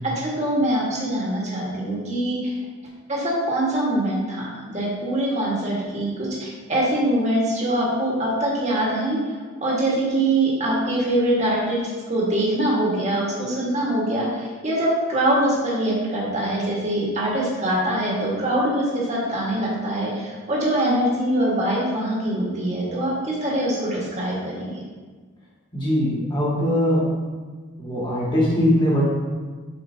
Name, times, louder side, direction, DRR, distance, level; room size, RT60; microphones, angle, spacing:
voice 1, 0.2-2.5 3.1-24.8, right 1 dB, 35° right, -5 dB, 1.5 m, -23 dB
voice 2, 25.7-27.0 27.8-29.0, left 1 dB, 20° left, -7 dB, 1.8 m, -21 dB
7.7 x 4.5 x 2.8 m, 1.4 s
head